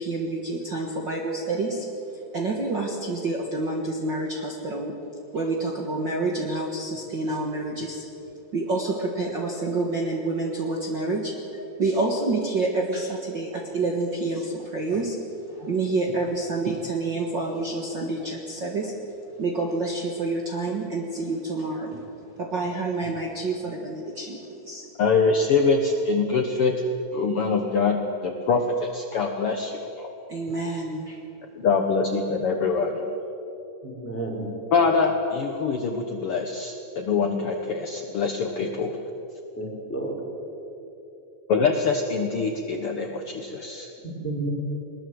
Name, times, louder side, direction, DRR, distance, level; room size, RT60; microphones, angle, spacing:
voice 1, 0.0-1.9 2.3-4.9 5.3-8.0 8.5-15.2 15.4-18.9 19.4-22.0 22.4-24.9 30.3-31.2, right 2 dB, 45° right, 0 dB, 1.9 m, -28 dB
voice 2, 25.0-26.7 27.1-30.1 31.6-33.2 34.7-39.0 41.5-43.9, left 4 dB, 55° left, 3 dB, 1.8 m, -24 dB
voice 3, 33.8-34.5 39.6-40.2 44.0-44.5, right 2 dB, 5° left, -2 dB, 4.5 m, -31 dB
21.5 x 20.5 x 7.8 m, 2.9 s
omnidirectional pair, 3.6 m